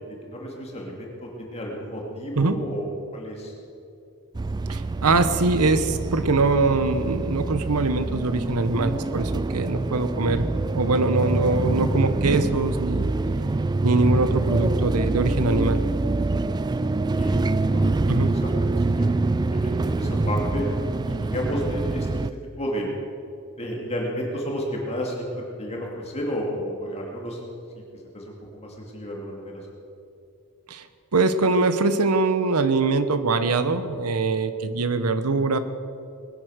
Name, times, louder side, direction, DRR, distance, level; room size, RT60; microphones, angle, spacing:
voice 1, 0.0-3.6 17.2-18.1 18.4-19.1 19.5-22.3 22.6-22.9 23.6-27.4 28.1-29.7, equal, 30° left, -2 dB, 2.5 m, -32 dB
sound 1, 4.3-22.3, right 2 dB, 20° right, 0.3 m, -25 dB
voice 2, 4.7-10.4 10.7-13.1 13.8-15.8 18.1-18.3 30.7-30.8 31.1-35.6, right 3 dB, 85° right, 11 dB, 1.0 m, -23 dB
20.5 x 10.0 x 6.5 m, 2.7 s
head